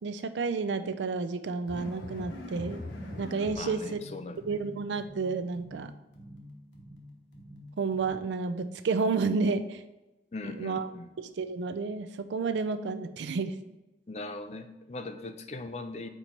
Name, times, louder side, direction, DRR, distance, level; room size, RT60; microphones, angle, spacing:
voice 1, 0.0-2.8 3.2-4.0 4.5-5.9 7.8-9.8 10.4-10.9 11.2-13.8, right 4 dB, 85° right, 11 dB, 0.4 m, -31 dB
sound 1, 1.7-8.1, left 1 dB, 90° left, 1.1 m, -44 dB
voice 2, 3.5-4.4 10.3-11.1 14.1-16.1, left 2 dB, 35° left, 8 dB, 0.4 m, -40 dB
4.4 x 4.4 x 5.3 m, 1.0 s
head